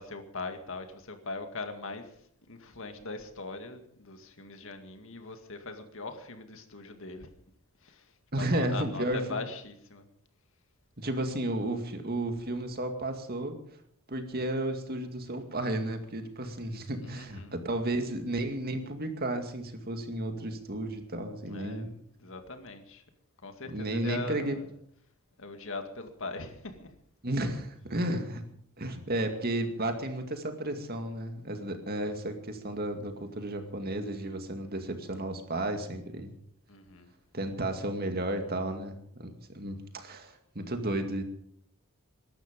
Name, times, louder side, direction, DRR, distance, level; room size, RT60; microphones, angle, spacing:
voice 1, 0.0-2.2 2.5-7.3 7.8-10.1 17.0-17.5 21.5-23.0 23.4-24.7 25.4-27.0 36.7-37.1, left 3 dB, 65° left, 7 dB, 2.1 m, -41 dB
voice 2, 8.3-9.4 11.0-13.6 14.1-21.9 23.7-24.6 27.2-28.4 28.8-36.3 37.3-41.2, right 1 dB, 45° right, 6 dB, 2.3 m, -33 dB
21.5 x 12.0 x 5.3 m, 0.65 s
head